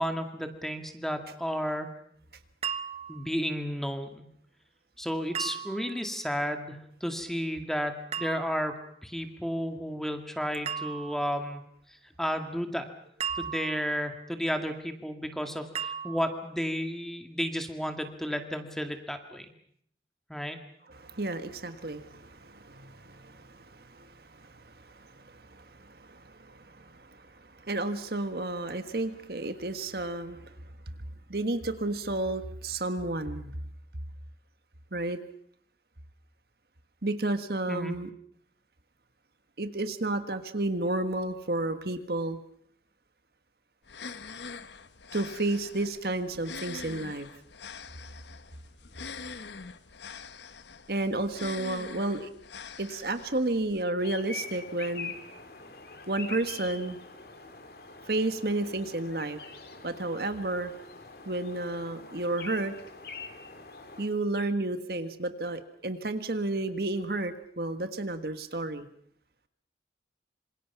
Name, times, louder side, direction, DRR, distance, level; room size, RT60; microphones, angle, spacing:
voice 1, 0.0-1.9 3.1-4.3 5.0-11.6 11.9-12.9 13.4-19.5 20.3-20.6 37.7-38.0, equal, ahead, 6 dB, 2.1 m, -32 dB
sound 1, 2.6-3.3 5.3-6.1 8.1-8.8 10.7-11.3 13.2-14.1 15.8-16.5, right 7 dB, 35° right, 1.1 m, -36 dB
voice 2, 20.9-30.4 31.3-33.5 34.9-35.2 37.0-38.1 39.6-42.4 45.1-47.3 50.9-52.3 52.8-55.1 56.1-57.0 58.1-59.4 59.8-60.7 61.2-62.7 64.0-68.9, right 2 dB, 60° right, 9 dB, 1.6 m, -32 dB
sound 2, 43.8-53.8, left 5 dB, 80° left, 1.2 m, -44 dB
sound 3, 54.0-64.1, left 4 dB, 55° left, 2.9 m, -44 dB
26.5 x 26.5 x 6.0 m, 0.66 s
head